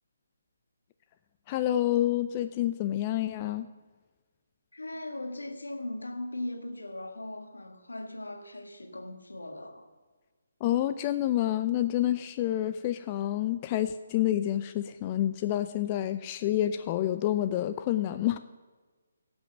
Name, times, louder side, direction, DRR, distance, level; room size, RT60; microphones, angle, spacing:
voice 1, 1.5-3.7 10.6-18.4, left 13 dB, 25° left, 0.4 m, -28 dB
voice 2, 4.7-9.9, left 1 dB, 80° left, 1.5 m, -39 dB
16.0 x 6.1 x 7.0 m
figure-of-eight pair, 140°, 0 cm